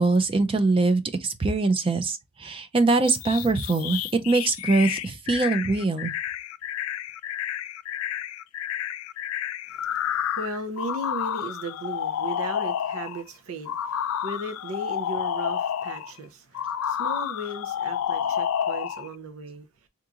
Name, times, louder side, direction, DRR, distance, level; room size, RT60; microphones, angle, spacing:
voice 1, 0.0-4.0 4.3-6.1, right 3 dB, 25° right, 0.4 m, -23 dB
sound 1, 3.0-13.2 13.7-16.1 16.5-19.1, left 9 dB, 85° left, 0.3 m, -30 dB
voice 2, 9.7-19.7, right 1 dB, 80° right, 0.6 m, -36 dB
3.6 x 2.9 x 2.4 m
head